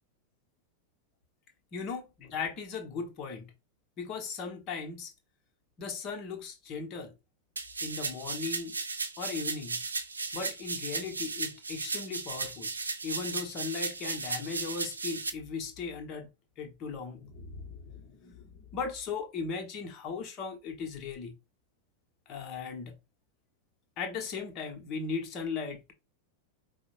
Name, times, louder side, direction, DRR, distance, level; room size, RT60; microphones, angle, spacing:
voice 1, 1.7-3.5 4.0-5.1 5.8-7.1 7.8-8.8 9.2-9.8 10.3-12.7 13.0-16.3 16.6-21.3 22.3-22.9 24.0-25.9, left 5 dB, 35° left, 1.0 m, -37 dB
sound 1, 7.6-15.3, right 4 dB, 75° right, 0.4 m, -35 dB
4.6 x 2.1 x 2.9 m
figure-of-eight pair, 90°, 0 cm